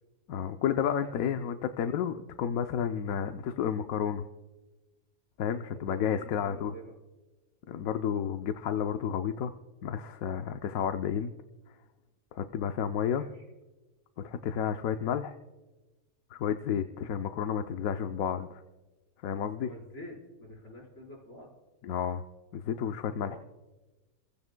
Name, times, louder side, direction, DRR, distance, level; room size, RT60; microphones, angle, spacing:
voice 1, 0.3-4.2 5.4-6.7 7.7-9.5 9.8-11.3 12.3-13.2 14.2-15.3 16.3-18.6 19.2-19.7 21.8-22.2 22.5-23.4, left 8 dB, 70° left, 7 dB, 1.1 m, -31 dB
voice 2, 1.0-1.4 5.7-6.9 13.2-13.4 19.6-21.5 23.2-23.4, equal, 50° left, -1 dB, 4.9 m, -47 dB
30.0 x 15.5 x 2.2 m, 1.2 s
omnidirectional pair, 1.6 m